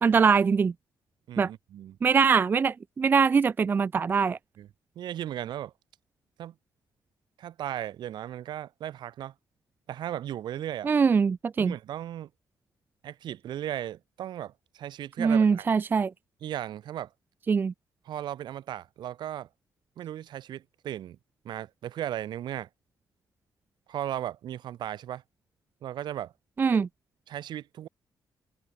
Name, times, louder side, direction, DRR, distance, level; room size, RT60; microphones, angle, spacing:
voice 1, 0.0-0.7 1.4-1.5 2.0-4.4 10.8-11.7 15.2-16.1 17.5-17.7 26.6-26.9, right 5 dB, 25° right, 0.4 m, -22 dB
voice 2, 1.3-2.0 4.6-4.7 4.9-5.7 6.4-6.5 7.4-9.3 9.9-10.9 11.6-12.3 13.0-15.7 16.4-17.1 18.0-19.5 20.0-21.2 21.4-22.7 23.9-25.2 25.8-26.3 27.3-27.9, right 11 dB, 70° right, 4.7 m, -36 dB
open air
cardioid pair, 170°, 8 cm